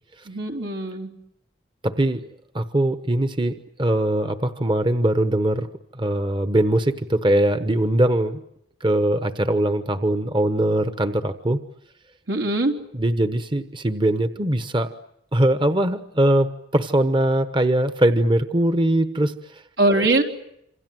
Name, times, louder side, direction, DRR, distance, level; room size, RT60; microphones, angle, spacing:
voice 1, 0.3-1.1 12.3-12.8 19.8-20.2, right 2 dB, 80° right, 4 dB, 4.1 m, -21 dB
voice 2, 1.8-2.2 2.5-5.7 5.9-8.4 8.8-11.6 12.9-14.9 15.3-19.6 20.0-20.1, right 1 dB, 25° right, 10 dB, 1.1 m, -21 dB
27.5 x 26.5 x 7.7 m, 0.78 s
head